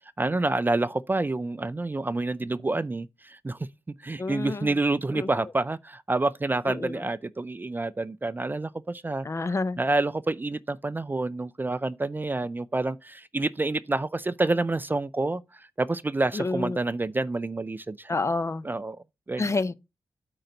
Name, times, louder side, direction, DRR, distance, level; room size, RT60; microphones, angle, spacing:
voice 1, 0.2-3.6 4.0-9.3 9.8-18.2 18.6-19.0 19.3-19.6, right 2 dB, 25° right, 0.4 m, -28 dB
voice 2, 4.2-4.7 5.1-5.3 6.7-6.9 9.2-9.8 16.3-16.8 18.1-18.6 19.4-19.7, left 3 dB, 35° left, 0.6 m, -28 dB
8.8 x 3.9 x 5.2 m
cardioid pair, 75°, 8 cm